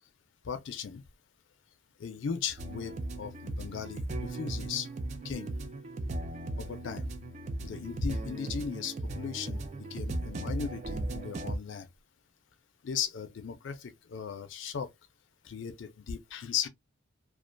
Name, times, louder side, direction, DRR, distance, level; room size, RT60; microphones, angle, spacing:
voice 1, 0.4-1.0 2.0-4.9 5.2-5.5 6.6-7.1 7.6-9.6 9.9-11.9 12.8-14.9 15.4-16.7, left 7 dB, 70° left, 0.4 m, -37 dB
sound 1, 2.6-11.6, right 2 dB, 35° right, 0.3 m, -37 dB
2.3 x 2.2 x 2.4 m
head